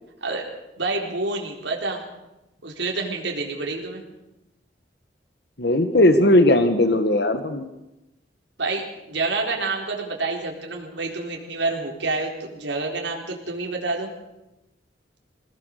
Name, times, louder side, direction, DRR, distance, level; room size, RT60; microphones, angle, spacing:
voice 1, 0.8-2.0 2.6-4.0 8.6-14.1, right 3 dB, 85° right, 0 dB, 4.1 m, -28 dB
voice 2, 5.6-7.7, left 1 dB, 65° left, 8 dB, 1.6 m, -18 dB
26.0 x 18.0 x 6.7 m, 0.93 s
head